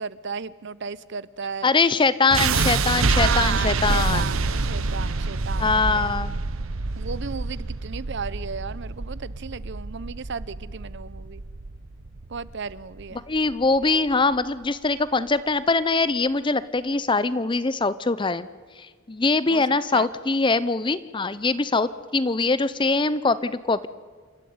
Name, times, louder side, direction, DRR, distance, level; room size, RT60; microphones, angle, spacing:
voice 1, 0.0-1.7 3.1-6.2 7.0-11.4 12.3-13.2 19.5-19.6 19.9-20.1, right 5 dB, 55° right, 18 dB, 0.6 m, -34 dB
voice 2, 1.6-4.4 5.6-6.4 13.1-18.5 18.8-23.9, left 3 dB, 20° left, 16 dB, 0.6 m, -23 dB
sound 1, 2.3-14.4, right 3 dB, 75° right, 1.0 m, -27 dB
28.0 x 13.0 x 9.5 m, 1.5 s
head